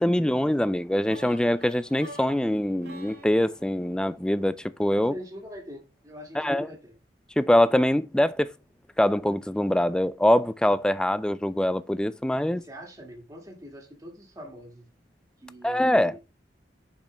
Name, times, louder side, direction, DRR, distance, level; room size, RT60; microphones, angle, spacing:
voice 1, 0.0-5.1 6.4-6.7 7.4-8.5 9.0-12.6 15.6-16.2, left 1 dB, 5° left, 0.3 m, -23 dB
sound 1, 1.1-5.0, right 1 dB, 70° right, 1.8 m, -47 dB
voice 2, 4.9-7.0 12.4-14.9 15.4-16.2, equal, 20° right, 2.0 m, -44 dB
6.9 x 5.2 x 3.3 m
head